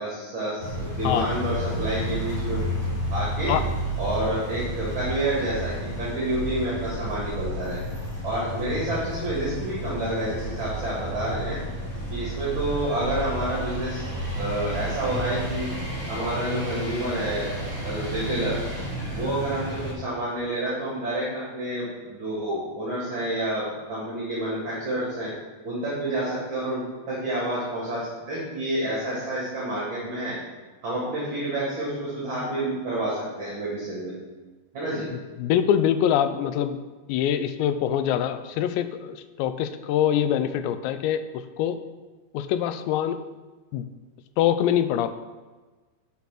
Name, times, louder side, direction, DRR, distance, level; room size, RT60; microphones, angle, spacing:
voice 1, 0.0-2.7 3.1-3.5 4.0-7.8 8.2-11.6 12.1-14.0 14.3-15.7 16.1-17.5 17.8-18.6 19.1-25.3 25.6-30.4 30.8-34.1 34.7-35.1, right 1 dB, 35° right, -7 dB, 2.4 m, -29 dB
sound 1, 0.6-19.9, right 1 dB, 30° left, 2.9 m, -31 dB
voice 2, 35.4-36.8 37.1-41.8 42.3-43.2 43.7-43.9 44.4-45.1, left 10 dB, 85° left, 11 dB, 2.8 m, -24 dB
8.7 x 6.1 x 5.9 m, 1.3 s
omnidirectional pair, 5.0 m